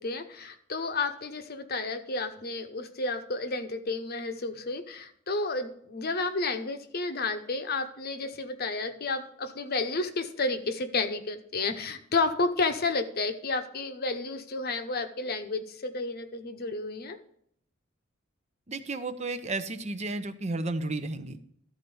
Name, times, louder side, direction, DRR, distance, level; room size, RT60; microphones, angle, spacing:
voice 1, 0.0-17.2, left 3 dB, 50° left, 8 dB, 0.9 m, -31 dB
voice 2, 18.7-21.4, right 2 dB, 35° right, 9 dB, 0.7 m, -33 dB
13.0 x 4.3 x 7.0 m, 0.69 s
head